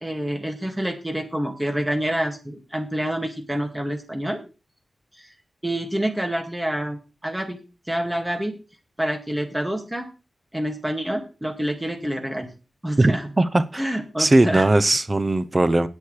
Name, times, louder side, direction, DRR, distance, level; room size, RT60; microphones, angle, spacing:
voice 1, 0.0-4.4 5.1-5.3 5.6-7.6 7.9-8.6 9.0-10.1 10.5-12.5 12.8-13.3 13.7-14.7, right 1 dB, 10° right, 2.0 m, -27 dB
voice 2, 13.0-13.8 14.2-15.9, right 2 dB, 25° right, 0.7 m, -19 dB
18.0 x 6.4 x 3.3 m
wide cardioid pair, 105°, 0 cm